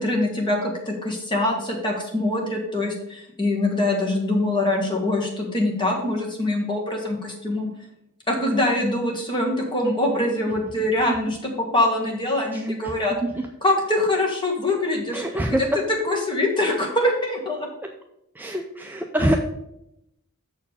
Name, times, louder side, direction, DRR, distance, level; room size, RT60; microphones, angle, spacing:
voice 1, 0.0-7.7 8.3-13.1 13.6-15.2 15.5-15.7 16.0-17.7, left 1 dB, 20° left, 0 dB, 1.7 m, -24 dB
voice 2, 12.5-13.5 15.1-15.8 18.4-19.4, right 1 dB, 10° right, 3 dB, 0.4 m, -25 dB
6.7 x 4.5 x 6.8 m, 0.83 s
head